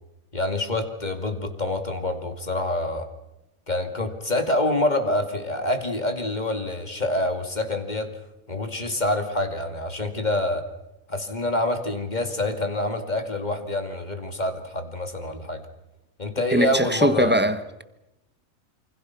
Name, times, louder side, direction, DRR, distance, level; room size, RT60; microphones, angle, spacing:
voice 1, 0.3-3.1 3.7-8.1 8.5-10.6 11.1-15.6 16.2-17.4, left 1 dB, 30° left, 2.4 m, -26 dB
voice 2, 16.5-17.8, right 1 dB, 10° right, 1.0 m, -22 dB
27.5 x 25.0 x 5.9 m
omnidirectional pair, 1.5 m